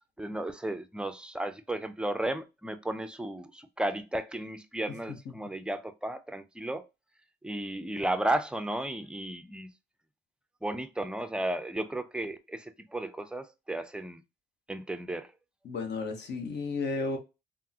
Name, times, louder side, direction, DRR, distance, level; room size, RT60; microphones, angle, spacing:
voice 1, 0.2-6.8 7.4-9.7 10.6-14.2 14.7-15.3, right 1 dB, 5° right, 0.4 m, -34 dB
voice 2, 15.6-17.2, left 3 dB, 60° left, 0.9 m, -33 dB
3.5 x 2.0 x 2.7 m
cardioid pair, 90°, 20 cm